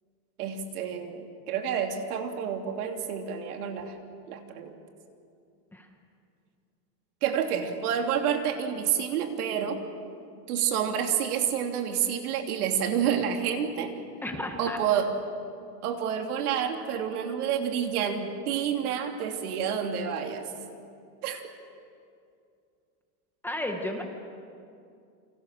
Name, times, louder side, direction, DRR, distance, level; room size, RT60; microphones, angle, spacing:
voice 1, 0.4-3.9 4.3-4.7 7.2-9.8 10.5-13.9 14.6-15.1 15.8-20.5 21.2-21.4, right 8 dB, 75° right, 4 dB, 3.1 m, -29 dB
voice 2, 14.2-14.8 16.8-16.9 23.4-24.0, left 1 dB, 5° left, 3 dB, 1.2 m, -33 dB
29.0 x 24.5 x 6.6 m, 2.5 s
supercardioid pair, 180°, 44 cm